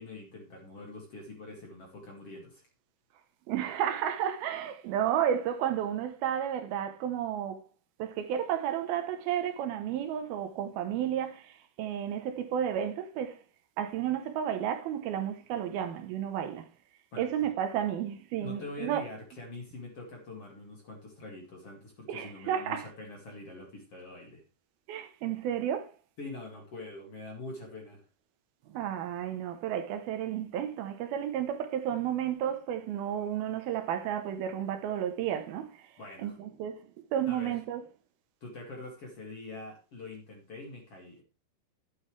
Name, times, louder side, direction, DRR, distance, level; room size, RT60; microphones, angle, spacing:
voice 1, 0.0-2.7 17.1-17.3 18.4-24.4 26.2-28.0 36.0-36.4 37.3-37.6 38.4-41.2, left 2 dB, 40° left, 2.7 m, -44 dB
voice 2, 3.5-7.6 8.0-13.4 13.8-16.7 17.2-19.0 22.1-22.9 24.9-25.9 28.7-35.9 36.2-37.8, right 10 dB, 75° right, 2.7 m, -32 dB
12.0 x 9.6 x 3.3 m
omnidirectional pair, 4.7 m